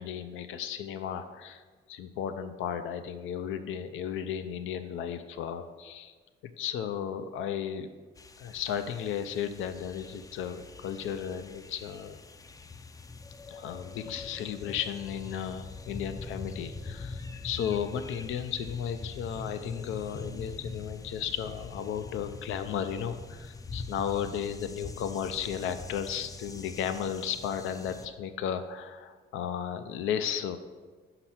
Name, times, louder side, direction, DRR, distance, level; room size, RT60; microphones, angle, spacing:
voice 1, 0.0-1.6 1.9-6.1 6.6-7.9 8.4-12.2 13.5-30.6, left 8 dB, 85° left, 10 dB, 0.5 m, -34 dB
sound 1, 8.2-28.1, left 3 dB, 15° left, 0.4 m, -44 dB
5.9 x 5.4 x 5.8 m, 1.4 s
cardioid pair, 90°, 20 cm